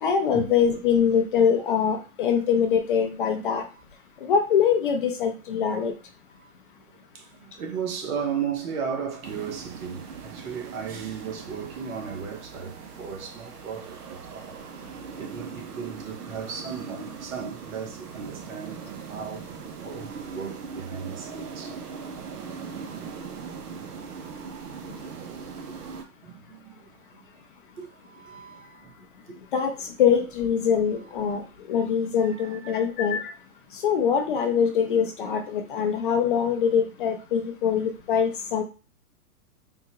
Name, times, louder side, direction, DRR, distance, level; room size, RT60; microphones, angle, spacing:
voice 1, 0.0-3.6 4.2-5.9 29.5-31.4 31.7-33.3 33.7-38.6, left 7 dB, 40° left, 0.4 m, -23 dB
voice 2, 7.1-19.5 19.8-21.8 22.8-23.0 23.8-24.2 26.2-27.2 27.8-29.0 29.3-29.4 32.2-32.8, right 7 dB, 65° right, 1.0 m, -36 dB
sound 1, 9.2-26.0, right 6 dB, 85° right, 0.7 m, -40 dB
3.7 x 2.1 x 2.9 m
hypercardioid pair, 125°, 45 cm